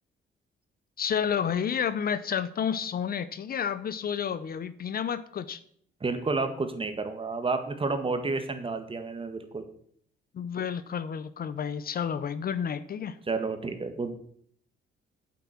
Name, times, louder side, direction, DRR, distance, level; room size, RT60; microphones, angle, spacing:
voice 1, 1.0-5.6 10.3-13.2, left 7 dB, 50° left, 14 dB, 0.7 m, -30 dB
voice 2, 6.0-9.6 13.3-14.2, right 3 dB, 25° right, 8 dB, 1.6 m, -30 dB
8.5 x 7.7 x 6.0 m, 0.63 s
cardioid pair, 90°, 20 cm